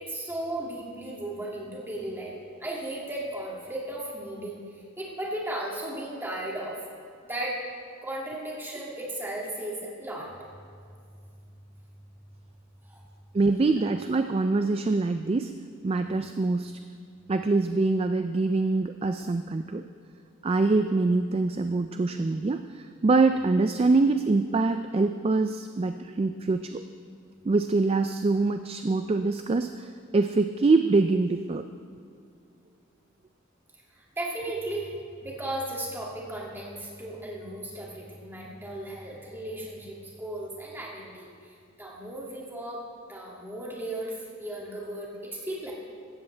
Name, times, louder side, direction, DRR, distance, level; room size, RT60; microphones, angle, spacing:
voice 1, 0.0-2.3 2.6-4.6 5.0-6.8 7.3-7.6 8.0-10.3 12.8-13.0 33.9-41.3 41.8-42.8 43.1-45.7, right 1 dB, 10° right, -4 dB, 2.3 m, -35 dB
voice 2, 13.3-15.5 15.8-16.7 17.3-19.8 20.4-26.8 27.4-31.6, right 3 dB, 30° right, 8 dB, 0.3 m, -24 dB
16.0 x 12.5 x 3.4 m, 2.3 s
head